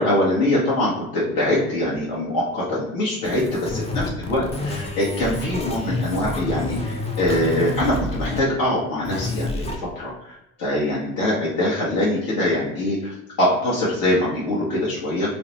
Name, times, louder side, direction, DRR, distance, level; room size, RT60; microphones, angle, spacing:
voice 1, 0.0-15.3, left 1 dB, 60° left, -6 dB, 0.9 m, -23 dB
sound 1, 3.2-8.4 9.0-9.8, left 2 dB, 15° left, 0.5 m, -28 dB
2.4 x 2.1 x 2.9 m, 0.86 s
hypercardioid pair, 65°, 41 cm